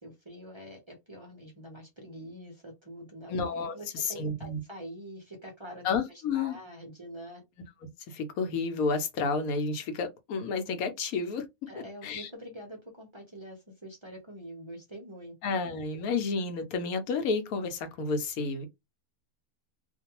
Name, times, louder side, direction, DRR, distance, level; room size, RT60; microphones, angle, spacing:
voice 1, 0.0-3.3 3.7-5.8 6.3-7.4 11.7-15.3, equal, 35° right, 0.5 m, -45 dB
voice 2, 3.3-4.6 5.8-6.6 8.1-11.5 12.0-12.3 15.4-18.7, left 4 dB, 75° left, 1.1 m, -31 dB
2.5 x 2.2 x 2.8 m
omnidirectional pair, 1.5 m